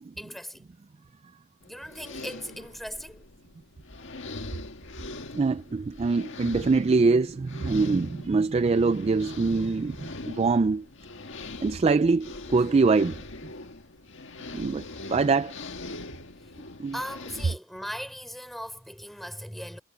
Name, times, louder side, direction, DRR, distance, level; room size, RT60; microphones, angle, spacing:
voice 1, 0.2-0.7 1.7-3.2 16.4-16.5 16.9-19.8, equal, ahead, 4.1 m, -38 dB
sound 1, 1.6-17.6, left 2 dB, 55° left, 1.8 m, -42 dB
voice 2, 5.3-10.9 11.6-13.2 14.5-15.6 16.8-17.0, right 4 dB, 30° right, 0.3 m, -24 dB
head